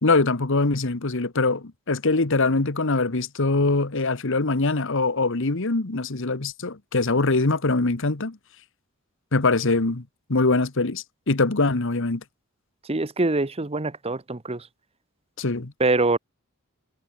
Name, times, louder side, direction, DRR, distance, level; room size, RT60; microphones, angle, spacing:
voice 1, 0.0-8.4 9.3-10.0 10.3-12.2 15.4-15.7, left 3 dB, 65° left, 1.4 m, -23 dB
voice 2, 12.9-14.6 15.8-16.2, right 2 dB, 30° right, 1.1 m, -24 dB
head